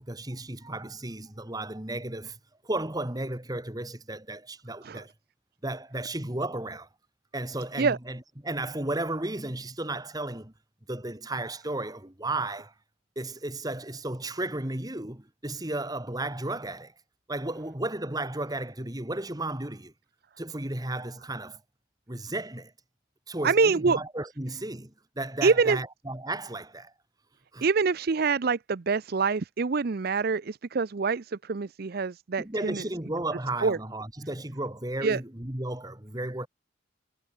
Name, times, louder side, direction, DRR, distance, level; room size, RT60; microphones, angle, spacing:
voice 1, 0.0-2.4 2.6-5.1 5.6-6.9 7.3-10.5 10.9-12.7 13.2-16.9 17.3-19.9 20.4-21.6 22.1-22.7 23.3-26.9 27.5-27.6 32.4-36.5, right 2 dB, 20° right, 1.8 m, -34 dB
voice 2, 23.4-24.0 25.4-25.8 27.6-32.8 33.6-33.8 35.0-35.2, right 4 dB, 50° right, 0.5 m, -25 dB
head